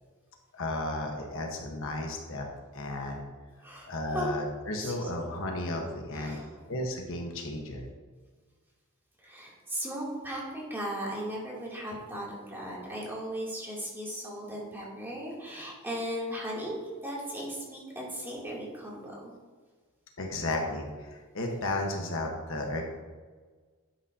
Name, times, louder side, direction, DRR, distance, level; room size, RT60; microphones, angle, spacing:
voice 1, 0.5-2.5 2.7-3.3 3.9-6.4 6.7-7.9 20.2-22.9, left 1 dB, 65° left, 1 dB, 1.2 m, -33 dB
voice 2, 3.6-4.3 4.8-5.1 6.1-6.7 9.2-19.3, equal, 10° right, -5 dB, 2.7 m, -37 dB
11.5 x 8.3 x 2.8 m, 1.4 s
head